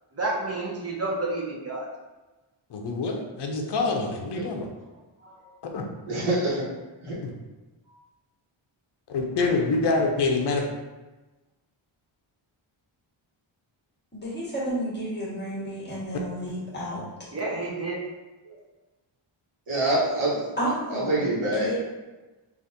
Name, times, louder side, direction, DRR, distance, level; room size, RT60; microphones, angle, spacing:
voice 1, 0.1-1.9 17.3-18.0, right 2 dB, 30° right, -4 dB, 0.6 m, -30 dB
voice 2, 2.7-4.7 5.6-5.8 7.2-7.3 9.1-10.7, left 3 dB, 55° left, 2 dB, 0.6 m, -26 dB
voice 3, 6.1-6.7 7.0-7.2 18.4-18.6 19.7-21.7, right 1 dB, 80° right, -8 dB, 1.1 m, -26 dB
voice 4, 14.1-17.0 20.6-21.2 21.6-21.8, right 1 dB, 20° left, -8 dB, 1.3 m, -31 dB
4.0 x 2.5 x 2.6 m, 1.1 s
wide cardioid pair, 120°, 49 cm